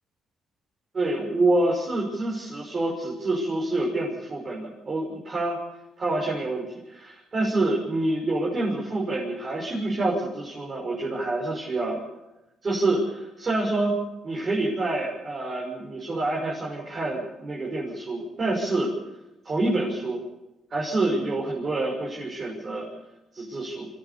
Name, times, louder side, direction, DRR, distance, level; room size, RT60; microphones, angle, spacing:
voice 1, 0.9-5.6 6.0-12.0 12.6-13.9 14.2-18.9 19.4-20.2 20.7-22.9 23.3-23.9, right 2 dB, 35° right, -5 dB, 6.4 m, -27 dB
25.5 x 14.5 x 7.2 m, 0.96 s
cardioid pair, 90°, 0 cm